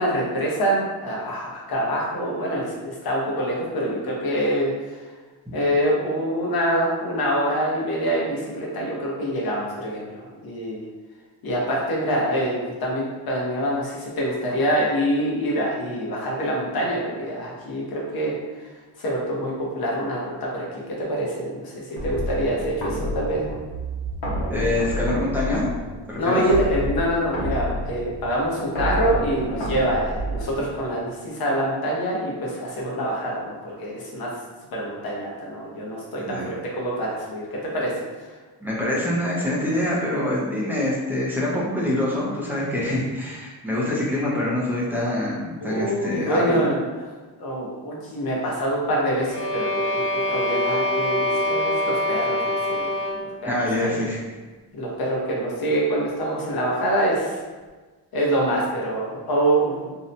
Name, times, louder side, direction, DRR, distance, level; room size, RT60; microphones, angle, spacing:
voice 1, 0.0-5.0 5.5-10.8 11.4-18.3 19.0-23.5 26.2-34.3 34.7-37.9 45.6-47.1 47.4-52.9 53.2-53.5 53.8-54.0 54.7-57.4 58.1-60.0, right 1 dB, 55° left, -3 dB, 0.8 m, -25 dB
sound 1, 22.0-30.9, equal, 90° left, 1.1 m, -29 dB
voice 2, 24.5-25.6 26.1-26.4 36.2-36.5 38.6-46.6 53.4-54.2, left 1 dB, 5° right, -7 dB, 0.3 m, -25 dB
sound 2, 49.2-53.4, left 1 dB, 30° left, 0.9 m, -24 dB
2.7 x 2.1 x 2.6 m, 1.3 s
wide cardioid pair, 170°, 44 cm